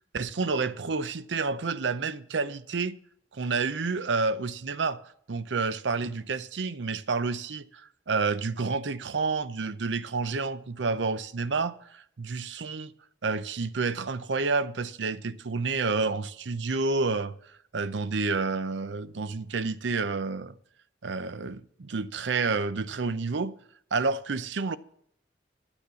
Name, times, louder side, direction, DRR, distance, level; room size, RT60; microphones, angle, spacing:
voice 1, 0.1-3.0 3.3-5.0 5.3-12.9 13.2-17.3 17.7-20.5 21.0-23.5 23.9-24.8, right 4 dB, 80° right, 0.6 m, -29 dB
11.5 x 7.1 x 6.9 m
head